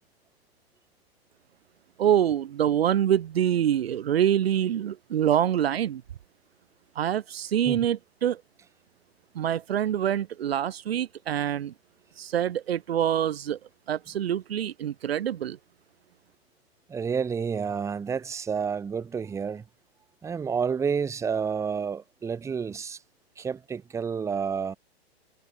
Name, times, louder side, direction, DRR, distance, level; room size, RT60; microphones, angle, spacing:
voice 1, 2.0-6.0 7.0-8.4 9.3-11.7 12.2-13.6 13.9-15.6, right 10 dB, 70° right, 1.2 m, -25 dB
voice 2, 16.9-19.6 20.2-23.0 23.4-24.7, right 6 dB, 10° right, 1.3 m, -29 dB
hypercardioid pair, 135°, 32 cm